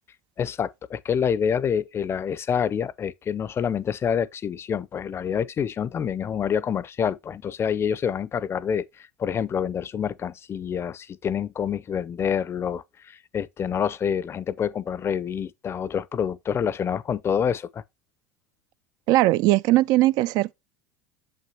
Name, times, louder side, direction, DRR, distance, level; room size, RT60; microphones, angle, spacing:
voice 1, 0.4-17.8, left 7 dB, 30° left, 0.5 m, -27 dB
voice 2, 19.1-20.5, right 17 dB, 55° right, 0.4 m, -19 dB
7.3 x 5.8 x 2.8 m
hypercardioid pair, 80°, 8 cm